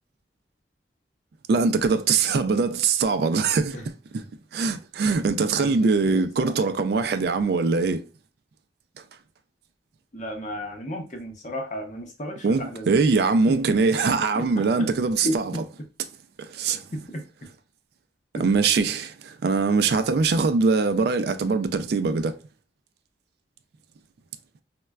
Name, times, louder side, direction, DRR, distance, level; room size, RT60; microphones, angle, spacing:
voice 1, 1.5-4.2 4.5-8.0 12.4-15.5 16.4-16.8 18.4-22.4, right 4 dB, 60° right, 0.3 m, -22 dB
voice 2, 5.6-6.5 10.1-12.9 14.3-14.9 15.2-15.4 17.1-17.2 18.3-18.4, equal, 40° left, 0.7 m, -33 dB
4.1 x 2.2 x 2.3 m
head